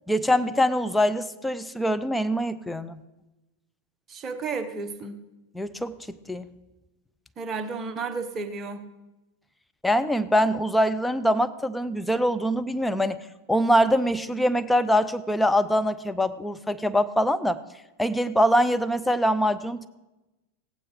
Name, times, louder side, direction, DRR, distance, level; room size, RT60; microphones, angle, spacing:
voice 1, 0.1-3.0 5.5-6.5 9.8-13.2 13.5-17.6 18.0-19.9, equal, 5° left, 10 dB, 0.6 m, -23 dB
voice 2, 4.1-5.2 7.4-8.8, right 4 dB, 25° right, 7 dB, 1.0 m, -32 dB
16.5 x 8.8 x 4.8 m, 1.0 s
figure-of-eight pair, 90°, 0 cm